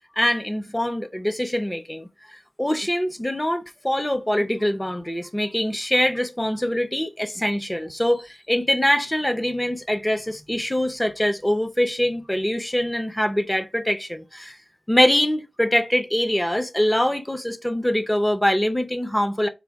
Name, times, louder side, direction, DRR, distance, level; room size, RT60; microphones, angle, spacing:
voice 1, 0.2-14.5 14.9-19.5, equal, 10° left, 0.6 m, -23 dB
4.6 x 2.3 x 3.5 m
wide cardioid pair, 100°, 0 cm